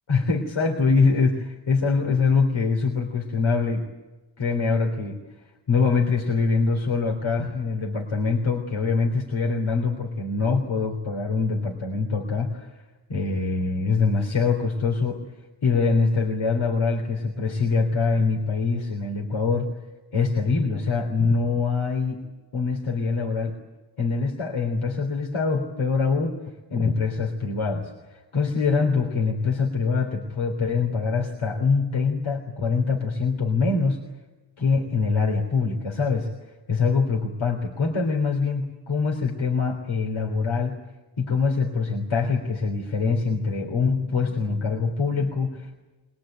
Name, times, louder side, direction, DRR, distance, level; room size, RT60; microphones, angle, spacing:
voice 1, 0.1-3.9 4.4-5.2 5.7-12.7 13.1-15.2 15.6-19.7 20.1-22.3 22.5-23.6 24.0-26.4 26.7-34.0 34.6-36.3 36.7-40.8 41.2-45.8, left 4 dB, 90° left, 1 dB, 3.6 m, -24 dB
23.0 x 22.0 x 9.0 m, 1.2 s
wide cardioid pair, 135°, 46 cm